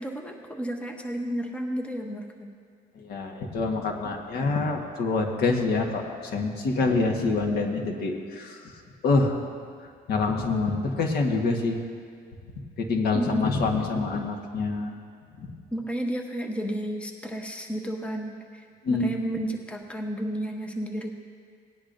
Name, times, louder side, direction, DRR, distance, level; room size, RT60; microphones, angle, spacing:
voice 1, 0.0-2.5 13.1-13.5 15.7-21.1, right 1 dB, 5° left, 2 dB, 0.9 m, -32 dB
voice 2, 2.9-8.7 9.0-9.4 10.1-11.8 12.8-15.0 15.4-15.5 18.8-19.1, left 3 dB, 70° left, 2 dB, 1.4 m, -26 dB
18.5 x 10.0 x 2.6 m, 2.2 s
cardioid pair, 110°, 17 cm